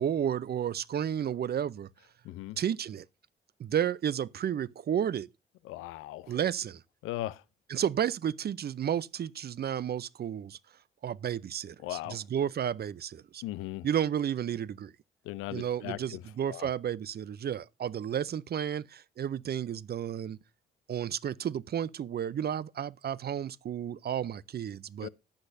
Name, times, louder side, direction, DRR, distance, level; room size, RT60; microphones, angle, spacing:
voice 1, 0.0-1.9 2.6-3.0 3.6-5.3 6.3-6.8 7.7-10.6 11.0-13.4 13.8-14.9 15.5-20.4 20.9-25.1, right 9 dB, 50° right, 0.6 m, -32 dB
voice 2, 2.2-2.6 5.6-6.3 7.0-7.4 11.8-12.2 13.4-13.9 15.2-16.2 16.5-16.7 25.0-25.1, left 16 dB, 80° left, 0.6 m, -38 dB
14.5 x 9.7 x 2.7 m
hypercardioid pair, 50°, 21 cm